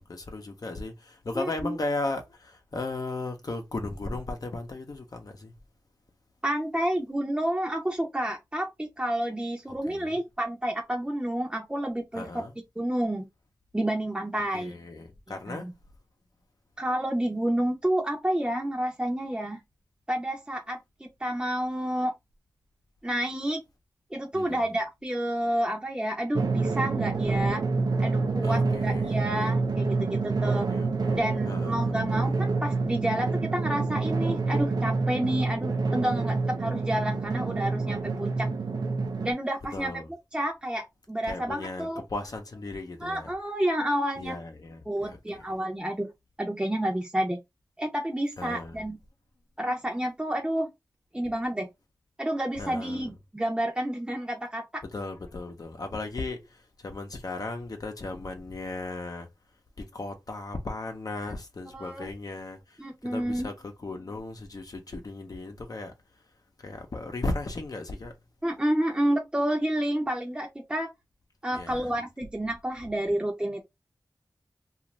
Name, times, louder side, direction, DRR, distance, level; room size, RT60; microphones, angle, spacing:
voice 1, 0.0-5.5 9.9-10.2 12.2-12.5 14.5-15.7 24.3-24.6 28.4-29.4 30.7-32.3 39.7-40.1 41.2-43.3 44.2-45.4 48.4-48.8 52.6-53.1 54.9-59.3 59.8-62.8 63.0-65.9 66.6-68.1 71.5-71.9, left 2 dB, 65° left, 0.7 m, -36 dB
voice 2, 1.4-1.7 6.4-12.3 12.8-13.3 13.7-14.8 15.3-15.7 16.8-19.6 20.1-22.1 23.0-23.6 24.1-27.6 28.0-30.7 31.1-38.5 39.2-40.0 40.3-42.0 43.0-44.4 44.9-46.1 46.4-47.4 47.8-49.0 49.6-50.7 51.1-51.7 52.2-54.8 61.7-62.1 62.8-63.5 68.4-70.9 71.4-73.6, right 1 dB, 15° right, 0.6 m, -29 dB
Drum, 26.3-39.3, right 3 dB, 80° right, 0.5 m, -27 dB
2.5 x 2.5 x 3.0 m
wide cardioid pair, 50°, 7 cm